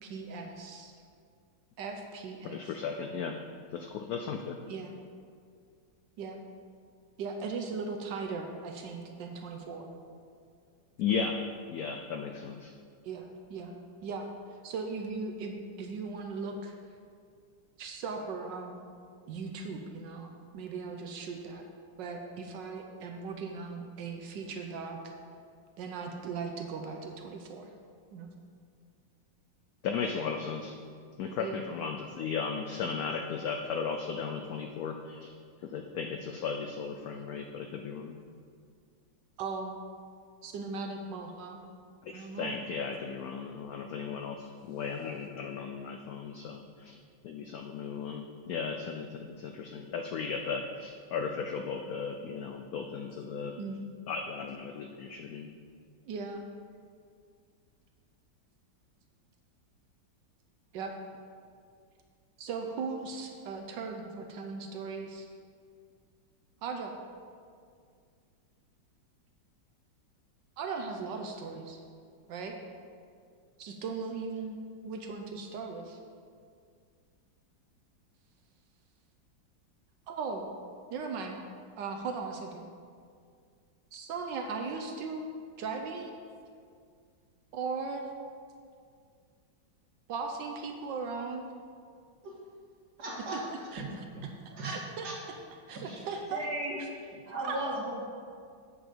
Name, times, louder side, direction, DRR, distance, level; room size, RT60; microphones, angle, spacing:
voice 1, 0.0-0.9 1.8-2.7 4.7-4.9 6.2-6.4 7.2-9.9 13.0-13.7 14.0-16.7 17.8-18.8 19.3-21.7 22.0-25.1 25.8-27.7 28.1-28.3 31.4-31.7 39.4-39.8 40.4-41.6 42.1-42.6 53.6-53.8 56.0-56.4 60.7-60.9 62.4-65.3 66.6-66.9 70.6-71.8 72.3-72.6 73.6-74.6 74.8-76.0 80.1-80.5 80.9-81.4 81.8-82.7 83.9-85.3 85.6-86.2 87.5-88.1 90.1-91.5 93.3-93.4 93.7-93.9 94.6-95.4 95.7-96.5 96.8-96.9 97.4-97.6, right 4 dB, 75° right, 3 dB, 1.3 m, -38 dB
voice 2, 2.4-3.4 3.7-4.6 11.0-11.4 11.7-12.7 29.8-30.7 31.2-35.3 35.6-38.2 42.0-47.0 47.2-53.5 54.1-55.5, left 5 dB, 90° left, 5 dB, 0.8 m, -36 dB
voice 3, 93.0-93.5 94.6-94.7 95.0-95.1 95.7-96.0 96.3-96.8 97.3-97.9, right 1 dB, 60° right, -5 dB, 2.4 m, -35 dB
7.9 x 6.3 x 5.3 m, 2.2 s
omnidirectional pair, 2.1 m